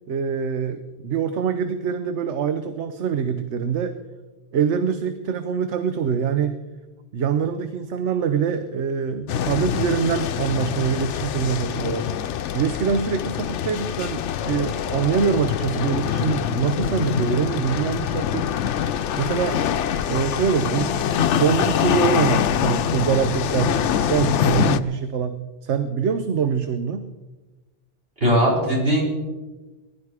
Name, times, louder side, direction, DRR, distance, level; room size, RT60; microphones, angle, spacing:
voice 1, 0.1-3.9 4.5-6.6 7.1-12.1 12.5-18.5 18.8-19.6 20.1-21.0 21.4-25.4 25.6-27.1, right 7 dB, 80° right, 9 dB, 1.1 m, -24 dB
sound 1, 9.3-24.8, left 9 dB, 85° left, 1.0 m, -24 dB
voice 2, 28.2-29.0, equal, 55° right, -5 dB, 5.5 m, -19 dB
20.0 x 12.0 x 4.8 m, 1.2 s
omnidirectional pair, 1.2 m